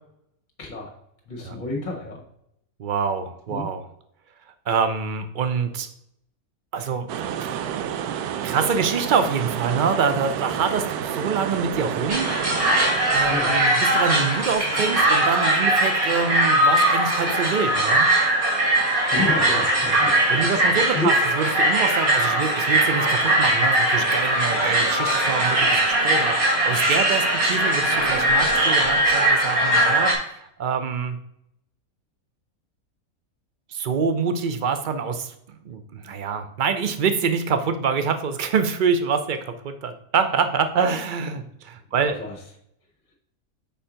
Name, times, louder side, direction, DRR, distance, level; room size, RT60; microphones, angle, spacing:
voice 1, 0.6-0.9 1.3-2.2 3.5-3.7 13.3-13.5 19.1-20.2 20.4-21.1 42.2-42.3, left 2 dB, 35° left, 0 dB, 1.2 m, -29 dB
voice 2, 2.8-3.8 4.7-5.9 6.7-7.1 7.4-7.5 8.4-12.3 13.1-18.1 20.3-31.2 33.7-42.2, right 5 dB, 50° right, 8 dB, 0.6 m, -25 dB
sound 1, 7.1-13.7, right 9 dB, 90° right, 1.1 m, -30 dB
sound 2, 12.1-30.2, right 1 dB, 70° right, 2.2 m, -20 dB
5.5 x 4.4 x 4.9 m, 0.75 s
omnidirectional pair, 1.6 m